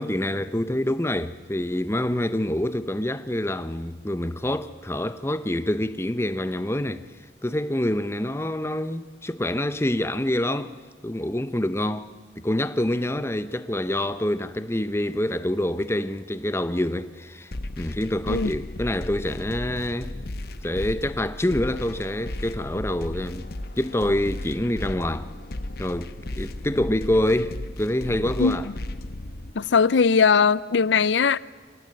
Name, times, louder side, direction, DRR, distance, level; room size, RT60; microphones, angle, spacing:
voice 1, 0.0-7.0 7.4-10.7 11.0-12.1 12.4-17.5 17.8-20.2 20.6-23.5 23.8-25.3 25.8-28.7, left 1 dB, 15° left, 0.7 m, -26 dB
sound 1, 17.5-29.5, left 1 dB, 55° left, 1.1 m, -35 dB
voice 2, 29.5-31.4, left 5 dB, 75° left, 0.6 m, -19 dB
25.0 x 17.5 x 7.8 m
head